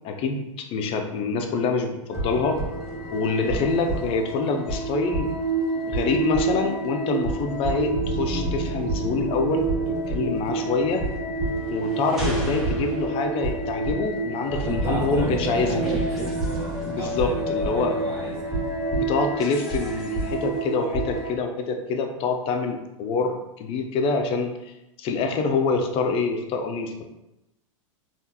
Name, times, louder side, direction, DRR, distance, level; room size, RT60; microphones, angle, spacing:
voice 1, 0.0-2.6 3.1-5.3 5.9-9.7 10.1-11.0 11.7-15.8 16.8-17.9 18.9-24.7 25.0-27.0, left 4 dB, 35° left, 5 dB, 0.5 m, -26 dB
sound 1, 2.1-21.3, right 2 dB, ahead, 1.1 m, -28 dB
voice 2, 14.4-18.7, right 2 dB, 30° right, -6 dB, 0.9 m, -34 dB
3.5 x 2.5 x 2.8 m, 0.93 s
hypercardioid pair, 110°, 17 cm